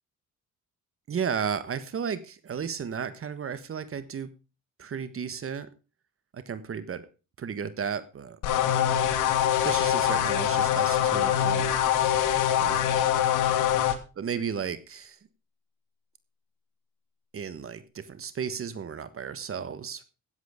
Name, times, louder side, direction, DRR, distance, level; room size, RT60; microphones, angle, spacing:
voice 1, 1.1-4.3 4.8-5.7 6.3-7.0 7.4-8.4 8.8-9.3 9.6-11.7 12.6-13.0 14.2-15.2 17.3-20.0, right 7 dB, 45° right, 13 dB, 1.4 m, -34 dB
sound 1, 8.4-14.0, left 10 dB, 85° left, 1.9 m, -24 dB
16.5 x 8.1 x 5.1 m, 0.32 s
cardioid pair, 90°, 30 cm